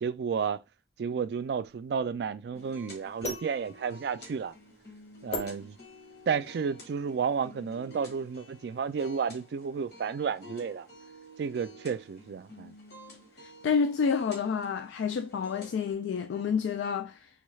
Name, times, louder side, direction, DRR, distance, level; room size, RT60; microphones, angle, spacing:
voice 1, 0.0-0.6 1.0-4.5 5.2-5.8 6.3-10.9 11.4-12.7, right 6 dB, 65° right, 0.3 m, -32 dB
sound 1, 1.2-6.4, left 2 dB, 40° left, 0.7 m, -41 dB
sound 2, 2.5-15.9, equal, 60° left, 1.1 m, -51 dB
voice 2, 13.4-17.3, left 6 dB, 90° left, 0.3 m, -29 dB
3.5 x 2.3 x 3.1 m
head